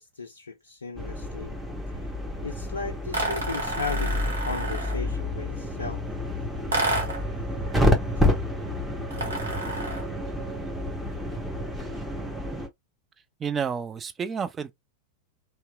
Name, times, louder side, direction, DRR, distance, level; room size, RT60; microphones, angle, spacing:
voice 1, 0.0-1.5 2.4-6.0, left 4 dB, 75° left, 0.4 m, -36 dB
sound 1, 1.0-12.7, left 1 dB, 5° right, 0.8 m, -29 dB
sound 2, 3.1-5.1 6.7-7.3 9.1-10.1, right 2 dB, 70° right, 0.9 m, -30 dB
voice 2, 13.4-14.7, right 6 dB, 20° right, 0.4 m, -30 dB
2.8 x 2.1 x 2.3 m
figure-of-eight pair, 90°, 0 cm